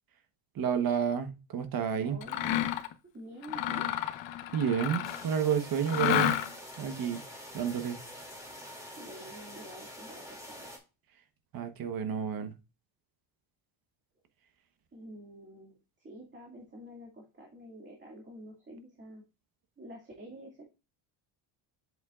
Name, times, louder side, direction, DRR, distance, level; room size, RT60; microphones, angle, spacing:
voice 1, 0.6-2.2 4.5-6.4 6.8-7.2 7.5-8.0 11.5-12.5, right 8 dB, 45° right, 1.1 m, -30 dB
voice 2, 2.0-2.8 3.1-3.9 9.0-10.7 14.9-19.2 19.8-20.6, equal, 25° right, 2.2 m, -48 dB
Mechanisms, 2.2-2.9 3.4-5.3 5.9-6.7, left 12 dB, 65° left, 1.0 m, -30 dB
sound 1, 5.0-10.8, equal, 5° right, 2.6 m, -46 dB
8.1 x 7.2 x 2.4 m
cardioid pair, 140°, 48 cm